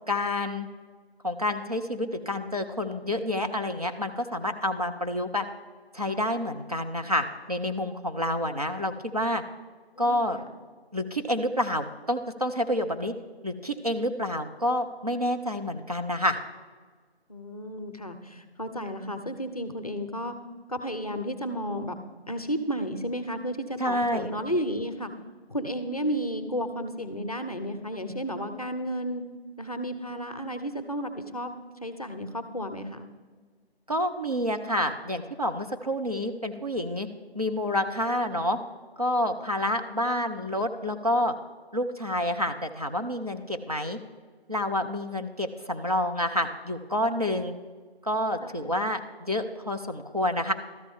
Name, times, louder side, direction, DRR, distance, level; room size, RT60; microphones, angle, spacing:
voice 1, 0.1-0.7 1.2-5.4 5.9-9.4 10.0-10.4 10.9-13.1 13.4-16.4 23.8-24.3 33.9-37.1 37.3-38.6 39.0-41.3 41.7-44.0 44.5-47.5 48.0-50.5, left 1 dB, 35° right, 5 dB, 0.5 m, -28 dB
voice 2, 10.0-10.5 17.3-20.3 20.7-22.0 22.3-25.1 25.5-29.2 29.6-31.5 31.8-33.1 48.4-48.7, equal, 35° left, 9 dB, 0.6 m, -32 dB
13.0 x 8.8 x 3.5 m, 1.5 s
figure-of-eight pair, 160°, 32 cm